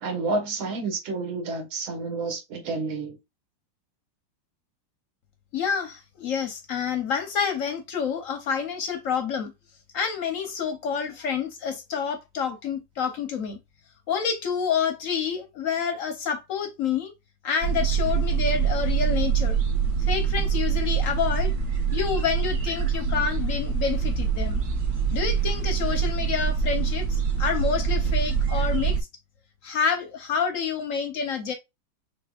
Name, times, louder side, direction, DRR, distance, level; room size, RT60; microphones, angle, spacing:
voice 1, 0.0-3.2, right 3 dB, 85° right, 2.0 m, -30 dB
voice 2, 5.5-9.5 9.9-13.6 14.1-17.1 17.4-19.6 20.1-21.5 21.9-24.6 25.1-29.0 29.6-31.5, left 6 dB, 65° left, 0.8 m, -28 dB
sound 1, 17.6-29.0, right 6 dB, 55° right, 1.5 m, -25 dB
6.6 x 2.3 x 2.3 m
omnidirectional pair, 2.1 m